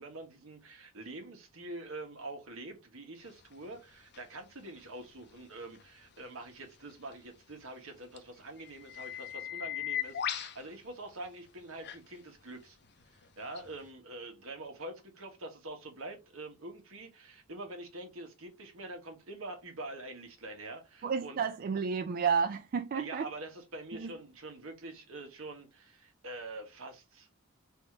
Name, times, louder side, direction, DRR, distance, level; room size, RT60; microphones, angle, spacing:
voice 1, 0.0-12.8 13.1-21.4 22.9-27.3, right 2 dB, 70° right, 1.3 m, -45 dB
sound 1, 4.1-4.2 8.2-8.3 8.7-10.5 11.8-12.0 13.6-13.7, left 10 dB, 55° left, 0.6 m, -37 dB
voice 2, 21.0-23.3 24.0-24.1, right 6 dB, 45° right, 0.4 m, -31 dB
3.5 x 2.7 x 4.6 m
head